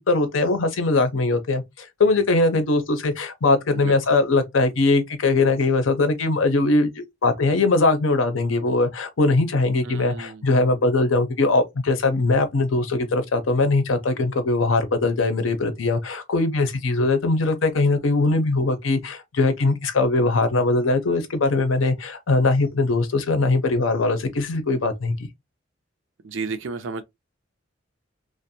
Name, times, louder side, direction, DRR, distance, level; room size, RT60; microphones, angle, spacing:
voice 1, 0.1-25.3, left 3 dB, 80° left, 0.6 m, -21 dB
voice 2, 9.8-10.5 26.2-27.0, right 4 dB, 70° right, 0.4 m, -32 dB
2.5 x 2.0 x 2.6 m
head